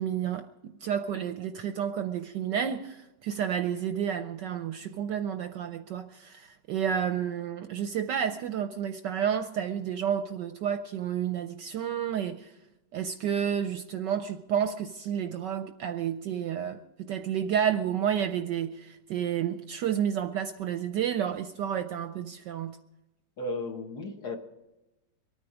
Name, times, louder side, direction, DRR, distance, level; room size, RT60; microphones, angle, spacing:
voice 1, 0.0-12.5 12.9-22.8, right 8 dB, 70° right, 1.1 m, -30 dB
voice 2, 23.4-24.4, left 2 dB, 50° left, 1.8 m, -34 dB
24.0 x 9.5 x 4.9 m
omnidirectional pair, 2.3 m